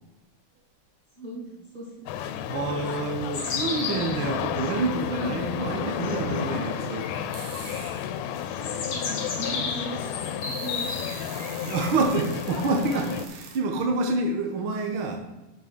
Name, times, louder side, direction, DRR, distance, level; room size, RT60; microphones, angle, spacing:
voice 1, 1.2-2.1 8.5-11.2, right 1 dB, 15° left, -4 dB, 2.9 m, -39 dB
sound 1, 2.1-13.3, left 9 dB, 85° left, 2.1 m, -32 dB
voice 2, 2.5-7.1 11.6-15.2, right 3 dB, 55° right, 3 dB, 1.5 m, -27 dB
sound 2, 3.3-4.2 4.6-4.7 6.0-6.4 6.7-8.0 8.5-12.2, left 4 dB, 55° left, 2.2 m, -34 dB
sound 3, 7.2-8.6 9.2-9.3 9.8-13.6, right 5 dB, 80° right, 2.8 m, -44 dB
7.9 x 6.4 x 6.0 m, 0.98 s
omnidirectional pair, 3.6 m